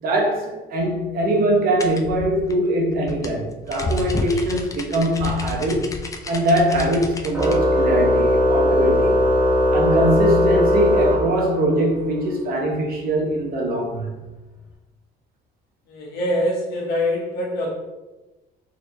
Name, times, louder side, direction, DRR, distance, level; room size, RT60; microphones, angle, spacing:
voice 1, 0.0-6.0 6.3-9.2 9.7-14.1, right 1 dB, 60° right, 0 dB, 0.9 m, -22 dB
sound 1, 1.8-7.6, left 2 dB, 20° left, 0.4 m, -30 dB
Organ, 7.3-11.9, left 1 dB, 10° right, 1.3 m, -19 dB
voice 2, 15.9-17.7, left 1 dB, 70° left, -3 dB, 1.1 m, -24 dB
4.1 x 2.8 x 2.7 m, 1.1 s
cardioid pair, 110°, 17 cm